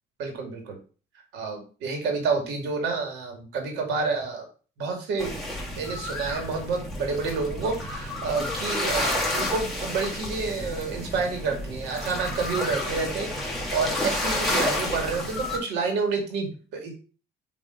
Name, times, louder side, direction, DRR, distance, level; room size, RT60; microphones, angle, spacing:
voice 1, 0.2-0.8 1.3-4.4 4.8-5.4 5.8-16.9, right 4 dB, 85° right, 3 dB, 2.2 m, -29 dB
sound 1, 5.2-15.6, left 1 dB, ahead, 2.3 m, -30 dB
6.4 x 3.4 x 5.1 m, 0.37 s
cardioid pair, 110°, 17 cm